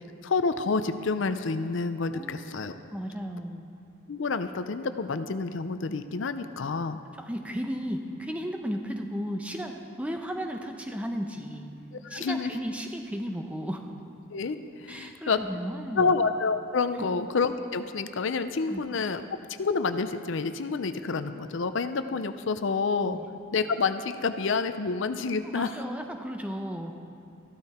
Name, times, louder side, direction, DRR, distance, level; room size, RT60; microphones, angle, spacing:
voice 1, 0.2-2.8 4.1-7.0 12.0-12.5 14.3-15.4 16.0-19.2 19.6-23.2 23.5-25.7, left 4 dB, 65° left, 10 dB, 0.5 m, -28 dB
voice 2, 2.1-2.6 2.9-3.7 7.2-11.7 12.1-13.8 14.9-16.1 18.7-18.8 23.1-23.3 25.4-27.0, equal, 5° right, 4 dB, 0.7 m, -34 dB
13.5 x 12.5 x 4.3 m, 2.8 s
head